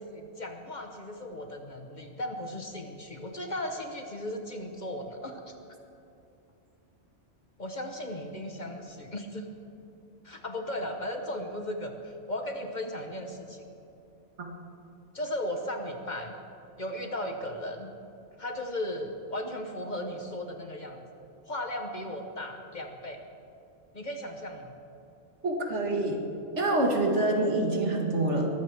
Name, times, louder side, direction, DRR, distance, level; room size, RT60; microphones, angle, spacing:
voice 1, 0.0-5.5 7.6-9.5 10.2-13.6 15.1-16.4 16.8-17.9 18.4-21.0 21.4-23.2 23.9-24.7, left 1 dB, 40° left, 4 dB, 1.2 m, -36 dB
voice 2, 25.4-26.2 26.6-28.5, right 2 dB, 70° right, 1 dB, 2.1 m, -26 dB
22.5 x 15.0 x 3.5 m, 2.8 s
omnidirectional pair, 1.2 m